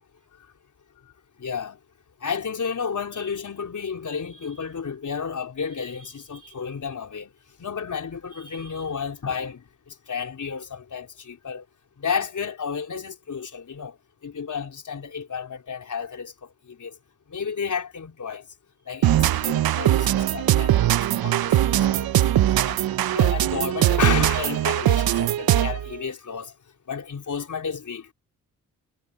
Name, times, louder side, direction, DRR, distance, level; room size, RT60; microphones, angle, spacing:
voice 1, 1.4-1.8 2.2-7.3 7.6-9.6 9.9-11.6 12.0-13.9 14.2-16.3 16.7-16.9 17.3-18.4 18.9-22.8 23.1-26.5 26.9-28.1, left 6 dB, 50° left, 4.4 m, -32 dB
sound 1, 19.0-25.9, right 12 dB, 70° right, 1.0 m, -21 dB
supercardioid pair, 55°, 37 cm